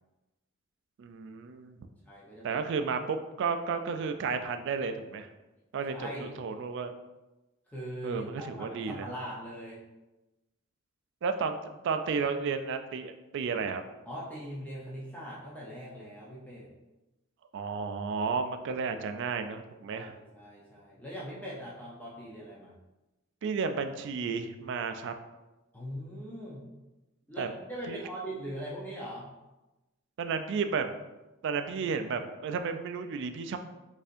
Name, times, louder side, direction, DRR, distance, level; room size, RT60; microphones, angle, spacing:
voice 1, 1.0-1.8 2.4-5.3 5.7-6.9 8.0-9.1 11.2-11.6 11.8-13.8 17.5-20.1 23.4-25.1 27.4-27.5 27.9-28.0 30.2-30.9 31.4-33.6, right 5 dB, 60° right, 7 dB, 0.3 m, -32 dB
voice 2, 2.1-2.6 5.9-6.4 7.7-9.8 14.1-16.7 19.9-20.1 20.3-22.7 25.7-26.6 27.3-29.3, equal, 10° left, -6 dB, 0.5 m, -41 dB
4.2 x 2.6 x 2.5 m, 1.1 s
head